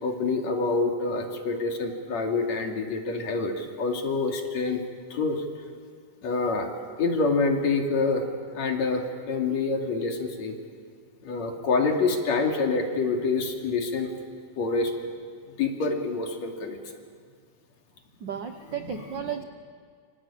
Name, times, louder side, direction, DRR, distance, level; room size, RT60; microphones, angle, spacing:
voice 1, 0.0-4.8 5.1-5.4 6.2-6.7 7.0-10.5 11.2-14.1 14.6-14.9 15.6-16.8 18.8-19.2, left 3 dB, 60° left, 2 dB, 3.7 m, -27 dB
voice 2, 18.2-19.4, right 9 dB, 85° right, 8 dB, 1.0 m, -34 dB
27.5 x 25.5 x 8.6 m, 2.1 s
omnidirectional pair, 3.6 m